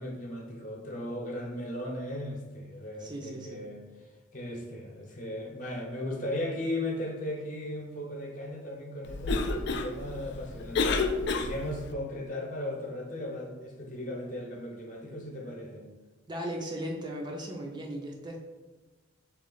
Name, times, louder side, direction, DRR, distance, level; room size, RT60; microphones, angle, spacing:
voice 1, 0.0-15.9, left 1 dB, 40° left, 0 dB, 0.8 m, -37 dB
voice 2, 3.0-3.7 16.3-18.4, equal, 20° right, 0 dB, 0.4 m, -37 dB
Cough, 9.0-11.9, left 3 dB, 55° left, 0.3 m, -30 dB
3.3 x 3.1 x 3.8 m, 1.2 s
head